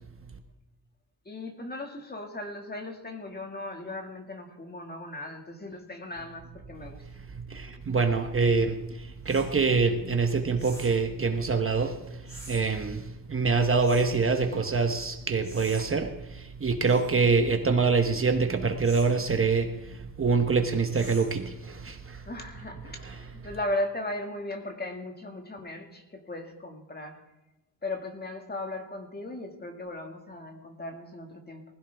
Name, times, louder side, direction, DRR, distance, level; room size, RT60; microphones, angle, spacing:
voice 1, 1.3-7.0 22.3-27.2 27.8-31.6, left 1 dB, 25° left, 3 dB, 2.0 m, -37 dB
voice 2, 7.3-22.3 23.0-23.1, right 4 dB, 30° right, 5 dB, 1.1 m, -25 dB
sound 1, 9.3-9.5 10.6-11.0 12.3-12.6 13.8-14.2 15.4-15.9 16.8-17.2 18.8-19.2 20.9-21.4, right 1 dB, 5° left, 5.5 m, -46 dB
20.0 x 15.5 x 3.5 m, 1.0 s
wide cardioid pair, 130°, 41 cm